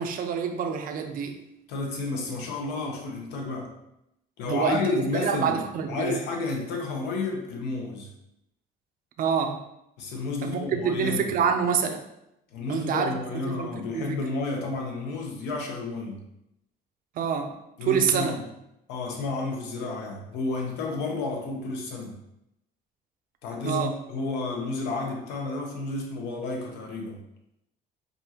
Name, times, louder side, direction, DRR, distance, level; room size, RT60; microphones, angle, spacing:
voice 1, 0.0-1.4 4.4-6.2 9.2-9.6 10.4-12.0 12.7-14.2 17.2-18.4 23.6-23.9, right 7 dB, 55° right, 5 dB, 0.5 m, -27 dB
voice 2, 1.7-3.7 4.4-5.6 5.9-8.1 10.0-11.3 12.5-16.2 17.8-18.4 18.9-22.2 23.4-27.2, left 3 dB, 90° left, 0 dB, 0.9 m, -31 dB
5.3 x 2.5 x 2.9 m, 0.83 s
cardioid pair, 110°, 17 cm